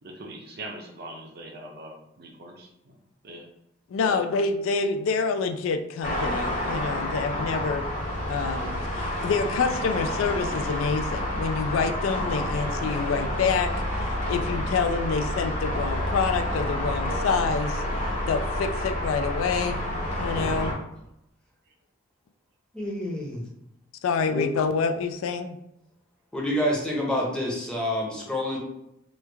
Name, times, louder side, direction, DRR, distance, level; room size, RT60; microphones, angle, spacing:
voice 1, 0.0-3.5 4.0-4.3 12.5-12.6 20.6-20.9 21.7-21.8, right 1 dB, 50° right, 2 dB, 0.6 m, -42 dB
voice 2, 3.9-7.8 8.3-17.8 18.3-20.8 24.0-25.6, left 5 dB, 80° left, 8 dB, 0.3 m, -27 dB
sound 1, 6.0-20.7, left 1 dB, 40° left, 0.7 m, -29 dB
voice 3, 22.7-23.4 24.3-24.4 26.3-28.6, left 1 dB, 5° left, -4 dB, 0.6 m, -27 dB
3.1 x 2.3 x 3.3 m, 0.83 s
head